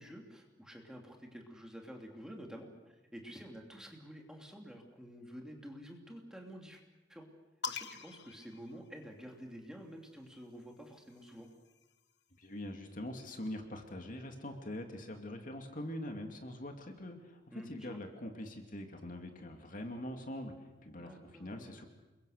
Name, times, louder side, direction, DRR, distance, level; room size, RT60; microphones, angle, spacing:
voice 1, 0.0-6.8 7.1-7.3 7.7-11.5 17.5-18.0 21.0-21.8, equal, 5° right, 1 dB, 2.9 m, -50 dB
sound 1, 7.6-9.4 10.5-12.2, left 5 dB, 65° left, 1.1 m, -46 dB
voice 2, 12.4-21.9, left 1 dB, 45° left, 4 dB, 2.6 m, -43 dB
28.0 x 22.5 x 6.7 m, 1.1 s
head